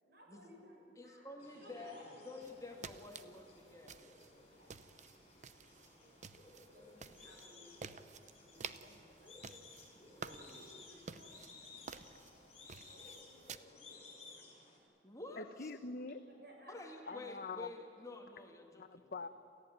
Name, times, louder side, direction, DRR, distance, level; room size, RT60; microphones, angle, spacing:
voice 1, 0.0-3.8 4.5-6.2 6.7-9.5 10.2-14.1 16.2-17.5, equal, 60° right, -1 dB, 6.8 m, -61 dB
voice 2, 1.0-2.0 2.3-4.0 10.2-10.6 15.0-15.7 16.7-19.1, left 2 dB, 20° left, 2 dB, 2.2 m, -50 dB
sound 1, 1.4-14.8, left 3 dB, 35° left, 6.1 m, -58 dB
sound 2, 2.4-13.6, right 5 dB, 45° right, 0.8 m, -52 dB
voice 3, 15.4-16.2 17.1-17.7 18.8-19.3, left 4 dB, 55° left, 11 dB, 0.9 m, -44 dB
28.5 x 15.0 x 9.3 m, 2.6 s
head